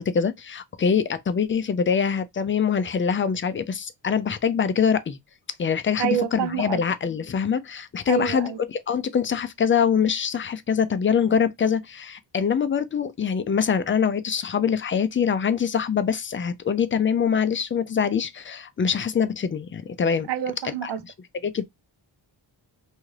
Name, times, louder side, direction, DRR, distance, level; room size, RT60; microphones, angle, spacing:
voice 1, 0.0-5.2 5.6-20.3 20.6-20.9 21.4-21.6, left 7 dB, 30° left, 0.4 m, -24 dB
voice 2, 6.0-6.8 8.1-8.6 20.3-21.0, right 10 dB, 65° right, 0.5 m, -27 dB
2.7 x 2.4 x 3.2 m
cardioid pair, 85°, 45 cm